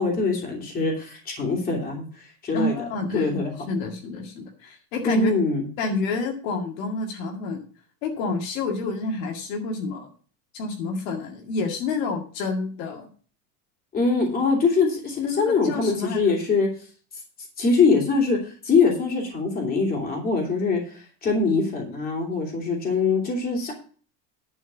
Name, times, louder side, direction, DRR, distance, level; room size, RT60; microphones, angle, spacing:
voice 1, 0.0-2.1 2.4-2.7 3.1-3.5 5.0-5.6 13.9-16.7 17.6-18.4 18.6-20.8 21.2-23.7, left 4 dB, 20° left, -1 dB, 2.9 m, -23 dB
voice 2, 2.5-3.4 3.7-5.3 5.8-7.7 8.0-10.1 10.5-13.1 15.2-16.3, left 3 dB, 65° left, 2 dB, 2.1 m, -29 dB
11.0 x 4.4 x 8.0 m, 0.42 s
cardioid pair, 175°, 43 cm